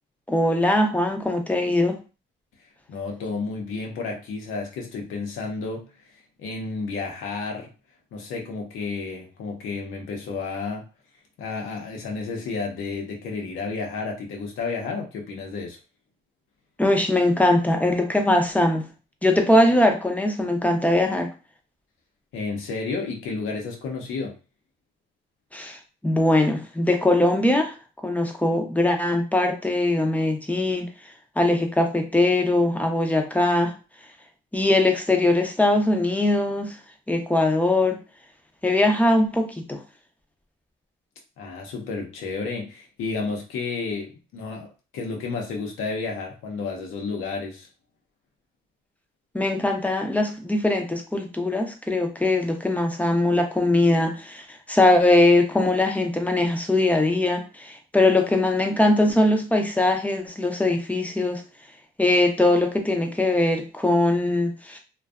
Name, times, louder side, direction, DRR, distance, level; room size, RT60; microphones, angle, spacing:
voice 1, 0.3-2.0 16.8-18.9 19.2-21.3 25.5-27.8 28.0-30.9 31.4-33.7 34.5-36.8 37.1-38.0 38.6-39.8 49.3-61.4 62.0-64.8, left 1 dB, 5° left, 4 dB, 0.5 m, -21 dB
voice 2, 2.9-5.9 6.4-7.7 8.1-10.8 11.4-15.8 22.3-24.4 41.4-47.7, left 4 dB, 85° left, 1 dB, 0.7 m, -31 dB
2.5 x 2.2 x 2.3 m, 0.32 s
cardioid pair, 90°, 20 cm